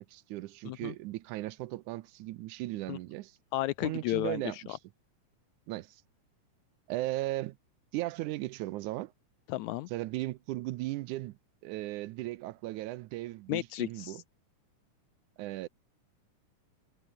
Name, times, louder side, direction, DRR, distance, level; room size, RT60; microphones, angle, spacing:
voice 1, 0.0-3.4 3.8-4.8 5.7-6.0 6.9-7.6 7.9-9.1 9.9-14.2 15.4-15.7, right 17 dB, 80° right, 2.1 m, -37 dB
voice 2, 3.5-4.4 4.7-4.8 9.5-9.9 13.5-14.2, left 17 dB, 80° left, 1.8 m, -33 dB
omnidirectional pair, 3.6 m